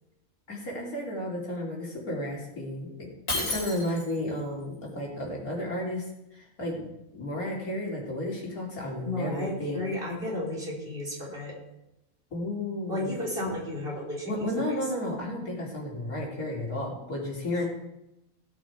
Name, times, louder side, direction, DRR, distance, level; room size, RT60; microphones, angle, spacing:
voice 1, 0.5-9.8 12.3-13.2 14.3-17.6, left 1 dB, 80° left, -3 dB, 3.6 m, -33 dB
Shatter, 3.3-4.3, left 2 dB, 65° left, 4.7 m, -31 dB
voice 2, 9.0-11.5 12.9-14.3 14.6-14.7 17.6-17.7, left 1 dB, 40° right, -4 dB, 3.9 m, -33 dB
16.5 x 8.8 x 4.7 m, 0.90 s
omnidirectional pair, 1.5 m